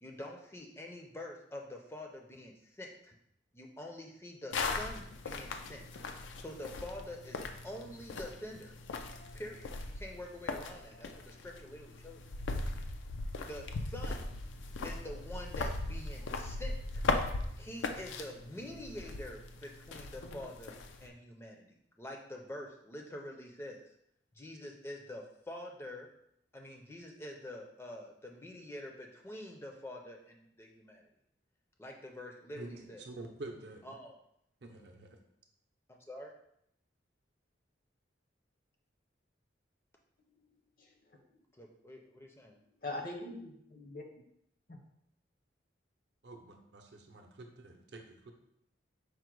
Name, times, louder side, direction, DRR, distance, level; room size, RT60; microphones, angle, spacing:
voice 1, 0.0-3.2 3.5-5.8 6.4-12.2 13.4-14.3 14.8-17.0 17.6-23.9 24.3-26.1 26.5-31.0 31.8-33.1 33.8-34.1 35.9-36.3 41.6-42.6, left 1 dB, 15° left, 1 dB, 0.4 m, -46 dB
sound 1, 4.5-21.1, left 3 dB, 85° left, 0.4 m, -39 dB
voice 2, 32.5-33.8 34.6-35.2 46.2-48.3, right 2 dB, 65° right, 3 dB, 0.6 m, -48 dB
voice 3, 40.3-41.2 42.7-44.0 44.7-44.8, left 2 dB, 50° left, 2 dB, 0.7 m, -44 dB
4.9 x 2.1 x 4.5 m, 0.75 s
head